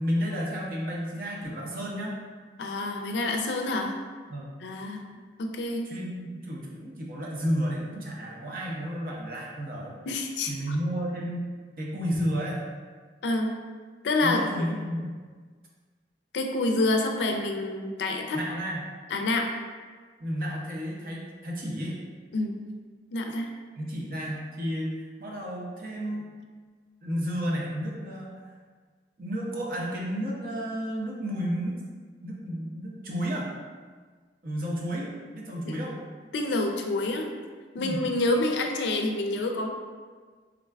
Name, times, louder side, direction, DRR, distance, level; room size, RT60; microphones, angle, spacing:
voice 1, 0.0-2.2 4.3-4.5 5.9-10.0 10.5-11.5 11.8-12.6 14.2-15.1 18.3-18.9 20.2-22.0 23.8-26.2 27.0-28.3 29.2-31.8 32.2-33.5 34.4-36.0 37.8-38.0, equal, 50° right, -3 dB, 0.6 m, -32 dB
voice 2, 2.6-3.9 4.6-5.0 5.4-5.9 10.1-10.5 13.2-13.5 14.0-14.4 16.3-18.4 19.1-19.5 22.3-22.6 23.1-23.5 35.6-35.8 36.3-37.3 37.7-39.7, left 2 dB, 80° left, 4 dB, 0.4 m, -27 dB
3.7 x 2.2 x 3.4 m, 1.5 s
head